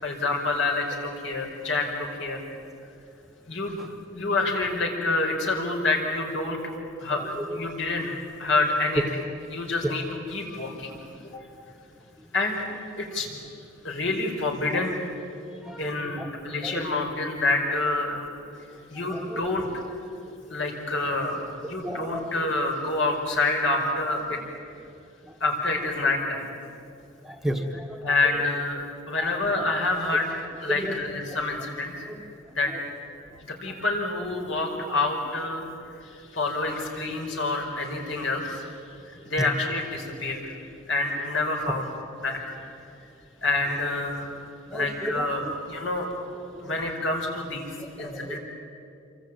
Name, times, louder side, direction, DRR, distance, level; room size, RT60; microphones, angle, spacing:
voice 1, 0.0-2.4 3.5-3.8 4.1-6.7 7.0-9.0 9.5-10.0 10.3-11.0 12.3-12.6 13.0-13.4 13.8-15.0 15.8-18.2 18.5-18.6 18.9-19.7 20.5-24.4 25.4-26.5 28.0-28.8 29.1-31.9 32.5-32.7 33.6-35.7 36.0-38.7 39.0-40.5 40.9-41.9 42.2-42.6 43.4-44.3 44.7-46.1 46.6-48.4, left 2 dB, 65° left, 2 dB, 5.1 m, -27 dB
voice 2, 15.6-16.3 16.6-16.9 19.1-19.4 21.8-22.3 27.2-28.0 29.2-29.3 30.8-31.0 32.1-32.2 39.4-39.5 44.7-45.5 48.0-48.4, equal, ahead, 3 dB, 1.3 m, -33 dB
27.5 x 24.0 x 8.9 m, 2.6 s
head